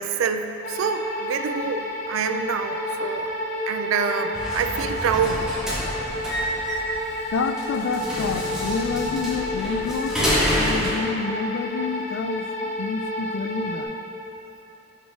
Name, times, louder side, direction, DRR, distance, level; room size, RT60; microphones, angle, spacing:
voice 1, 0.0-3.3 3.7-5.5, right 6 dB, 80° right, 8 dB, 0.3 m, -26 dB
sound 1, 0.6-13.9, left 1 dB, 40° left, 0.6 m, -30 dB
sound 2, 4.3-10.9, equal, 5° right, 1.0 m, -28 dB
voice 2, 7.3-10.2 10.5-12.5 12.8-13.9, left 5 dB, 75° left, 8 dB, 0.3 m, -28 dB
5.1 x 4.0 x 4.8 m, 3.0 s
head